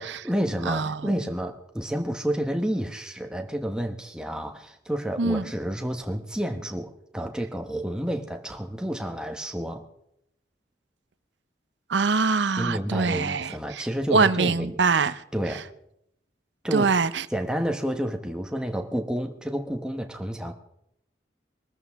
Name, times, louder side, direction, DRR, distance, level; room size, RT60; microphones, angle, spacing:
voice 1, 0.0-9.8 12.6-14.7 15.3-15.6 16.6-16.9 17.3-20.5, equal, 5° right, 4 dB, 1.2 m, -30 dB
voice 2, 0.7-1.1 5.2-5.5 11.9-13.8 14.1-15.2 16.7-17.3, right 4 dB, 75° right, 14 dB, 0.7 m, -23 dB
23.5 x 14.0 x 3.6 m, 0.75 s
head